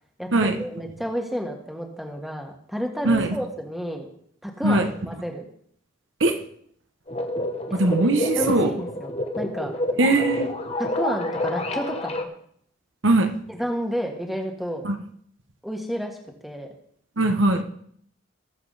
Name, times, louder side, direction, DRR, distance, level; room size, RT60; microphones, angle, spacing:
voice 1, 0.2-4.1 4.4-5.4 7.7-8.1 8.4-9.7 10.8-12.3 13.5-14.9 15.6-16.1 16.4-16.7, equal, ahead, 2 dB, 1.6 m, -31 dB
voice 2, 3.0-3.4 4.6-4.9 6.2-6.4 7.7-8.7 10.0-10.5 13.0-13.3 14.8-15.0 17.2-17.6, right 2 dB, 65° right, 6 dB, 1.1 m, -20 dB
sound 1, 7.1-12.2, left 1 dB, 30° left, 1.0 m, -28 dB
20.5 x 7.1 x 4.1 m, 0.65 s
head